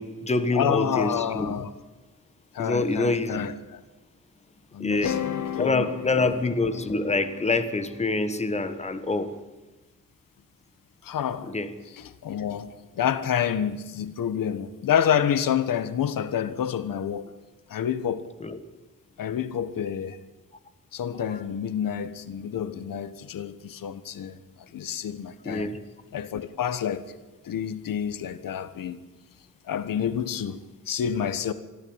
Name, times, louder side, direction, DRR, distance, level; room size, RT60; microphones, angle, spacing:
voice 1, 0.0-1.5 2.6-3.5 4.8-5.1 5.6-9.3 11.5-11.7 18.4-18.6 19.8-19.9 25.4-25.8, left 3 dB, 20° left, 1.6 m, -26 dB
voice 2, 0.5-1.7 2.5-3.8 4.7-5.9 6.2-6.3 11.0-11.5 11.9-17.3 17.7-18.3 19.2-20.2 20.9-25.7 26.1-27.1 27.4-29.0 29.6-31.5, left 9 dB, 85° left, 1.4 m, -28 dB
sound 1, 4.9-9.1, left 9 dB, 65° left, 1.5 m, -34 dB
24.5 x 14.5 x 9.0 m
wide cardioid pair, 175°, 32 cm